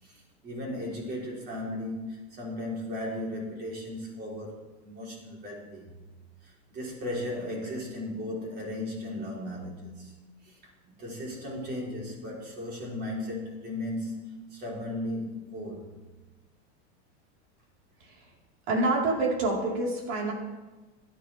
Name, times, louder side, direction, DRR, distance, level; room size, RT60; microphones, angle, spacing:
voice 1, 0.0-6.0 6.4-10.1 10.4-10.6 10.8-15.9, left 1 dB, 30° right, -3 dB, 4.3 m, -36 dB
voice 2, 18.7-20.3, right 2 dB, 65° right, -2 dB, 4.6 m, -26 dB
16.5 x 11.0 x 3.6 m, 1.2 s
supercardioid pair, 155°, 33 cm